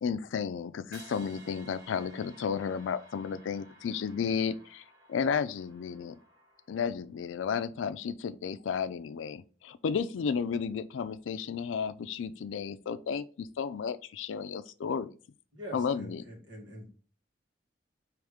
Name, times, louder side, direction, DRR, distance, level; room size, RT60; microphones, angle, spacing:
voice 1, 0.0-4.8 5.1-6.2 6.7-15.1 15.7-16.2, left 6 dB, 90° left, 0.4 m, -33 dB
sound 1, 0.9-7.0, right 1 dB, 60° right, 2.3 m, -55 dB
voice 2, 15.5-16.9, equal, 80° right, 1.7 m, -44 dB
4.8 x 3.1 x 3.5 m
head